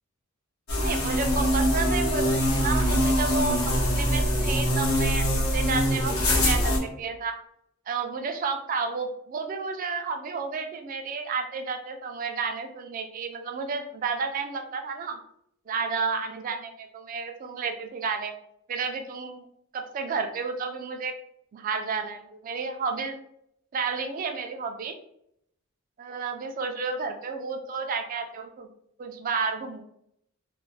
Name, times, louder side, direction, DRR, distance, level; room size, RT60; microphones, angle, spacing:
sound 1, 0.7-6.8, equal, 85° left, 0.8 m, -23 dB
voice 1, 0.8-5.3 5.5-7.4 7.9-15.2 15.7-18.3 18.7-19.4 19.7-21.1 21.5-23.2 23.7-24.9 26.0-28.7 29.0-29.8, right 5 dB, 40° right, 5 dB, 0.3 m, -31 dB
2.4 x 2.0 x 3.1 m, 0.73 s
head